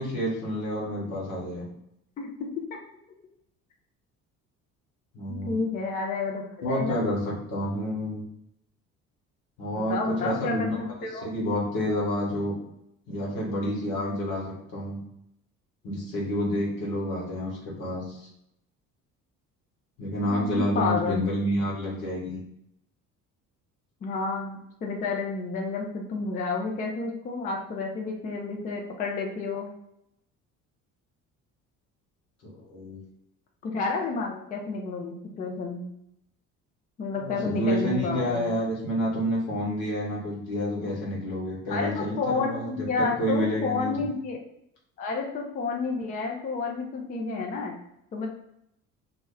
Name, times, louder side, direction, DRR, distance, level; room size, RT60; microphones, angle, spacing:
voice 1, 0.0-1.7 5.1-5.6 6.6-8.2 9.6-10.8 11.2-12.6 13.1-15.0 15.8-18.3 20.0-22.4 32.4-33.0 37.2-44.1, equal, 65° left, -4 dB, 1.0 m, -29 dB
voice 2, 2.2-2.6 5.3-7.0 9.7-10.7 11.0-11.3 20.2-21.3 24.0-29.7 33.6-35.9 37.0-38.5 41.7-44.4 45.0-47.7 48.1-48.3, left 4 dB, 20° left, 0 dB, 0.3 m, -30 dB
2.3 x 2.1 x 3.4 m, 0.78 s
figure-of-eight pair, 50°, 44 cm